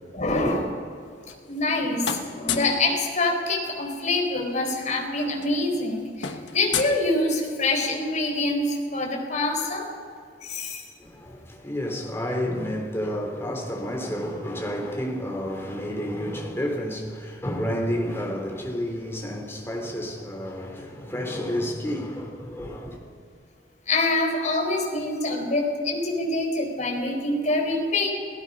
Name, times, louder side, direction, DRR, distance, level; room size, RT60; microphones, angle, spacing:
voice 1, 0.1-0.7 1.5-9.9 10.4-10.8 23.9-28.1, left 2 dB, 45° left, 4.5 m, -25 dB
sound 1, 1.0-1.8 2.0-2.8 4.2-4.3 4.6-4.8 5.0-7.7, left 7 dB, 80° left, 1.3 m, -33 dB
voice 2, 11.0-23.0, equal, 15° left, 3.5 m, -30 dB
28.5 x 18.0 x 5.4 m
head